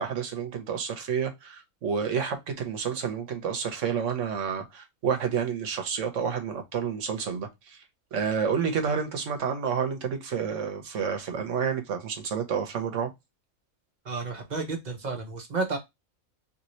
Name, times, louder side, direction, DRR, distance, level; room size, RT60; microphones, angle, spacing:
voice 1, 0.0-7.8 8.1-13.1, right 7 dB, 60° right, 1.2 m, -29 dB
voice 2, 14.0-15.8, right 3 dB, 35° right, 0.9 m, -31 dB
3.1 x 2.8 x 3.0 m
omnidirectional pair, 1.5 m